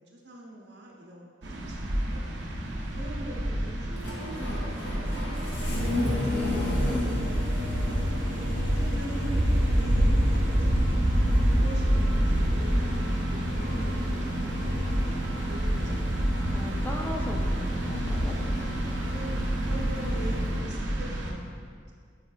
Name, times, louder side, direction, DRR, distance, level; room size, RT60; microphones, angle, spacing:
voice 1, 0.0-1.8 2.1-2.2 2.9-5.0 5.6-10.5 11.4-15.2 15.5-16.8 18.3-21.9, right 1 dB, 65° right, -1 dB, 1.0 m, -43 dB
sound 1, 1.4-21.3, right 1 dB, 90° right, 0.8 m, -28 dB
Engine starting, 2.4-20.7, equal, 70° left, 1.2 m, -31 dB
voice 2, 6.3-7.0 16.5-18.3, left 1 dB, 10° left, 1 dB, 0.4 m, -38 dB
7.9 x 5.0 x 2.6 m, 2.1 s
head